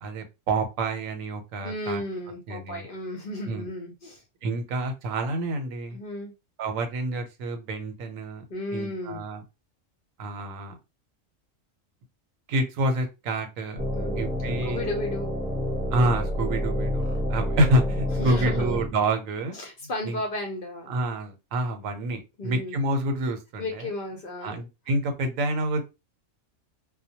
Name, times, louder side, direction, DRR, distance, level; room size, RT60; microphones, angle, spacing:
voice 1, 0.0-2.0 2.5-2.9 3.5-3.7 4.4-6.0 6.6-8.4 8.7-9.4 10.2-10.7 12.5-13.8 14.2-14.9 15.9-19.6 20.0-20.2 20.9-23.9 24.4-25.8, right 1 dB, 85° right, 6 dB, 1.0 m, -28 dB
voice 2, 1.6-4.2 5.9-6.3 8.5-9.2 13.9-14.3 14.6-15.3 18.2-18.8 19.5-21.0 22.4-22.8 23.6-24.6, left 2 dB, 55° left, 1 dB, 0.7 m, -34 dB
sound 1, 13.8-18.9, equal, 5° right, 0.8 m, -28 dB
2.2 x 2.1 x 2.7 m, 0.25 s
omnidirectional pair, 1.4 m